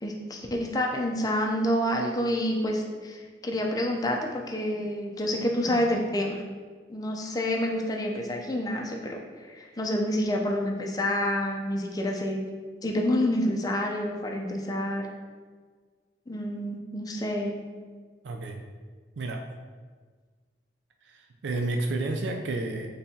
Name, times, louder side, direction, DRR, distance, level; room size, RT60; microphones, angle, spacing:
voice 1, 0.0-6.4 6.9-12.4 12.8-15.1 16.3-17.5, left 1 dB, 20° left, 1 dB, 0.5 m, -28 dB
voice 2, 18.2-18.6 19.2-19.4 21.0-22.9, right 2 dB, 85° right, 3 dB, 0.4 m, -31 dB
4.4 x 3.3 x 2.7 m, 1.5 s
head